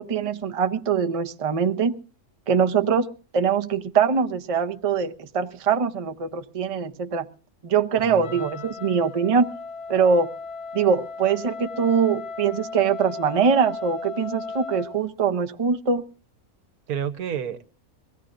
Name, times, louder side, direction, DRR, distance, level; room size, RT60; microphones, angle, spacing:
voice 1, 0.0-1.9 2.5-3.1 3.3-7.3 7.6-9.5 9.9-10.3 10.7-16.0, right 6 dB, 35° right, 7 dB, 0.6 m, -23 dB
voice 2, 8.0-8.7 16.9-17.6, right 8 dB, 85° right, 11 dB, 1.4 m, -31 dB
Wind instrument woodwind instrument, 8.2-15.0, left 4 dB, 55° left, 1.1 m, -36 dB
23.5 x 16.5 x 2.5 m, 0.37 s
omnidirectional pair, 1.5 m